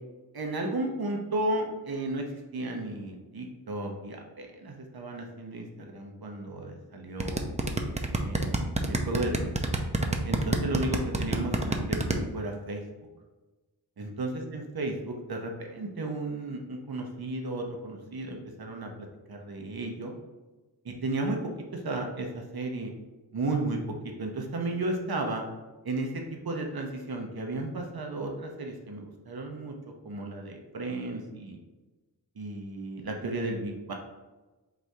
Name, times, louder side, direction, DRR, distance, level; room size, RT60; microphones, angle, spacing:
voice 1, 0.3-2.2 2.5-7.5 8.2-8.5 8.9-9.5 10.2-12.8 14.0-20.1 20.8-21.4 21.7-22.9 23.3-25.4 25.8-29.7 30.0-31.6 32.4-33.9, right 2 dB, 65° right, 2 dB, 0.8 m, -34 dB
sound 1, 7.2-12.2, right 2 dB, 20° right, 0.5 m, -27 dB
4.0 x 2.7 x 4.6 m, 1.2 s
wide cardioid pair, 45°, 40 cm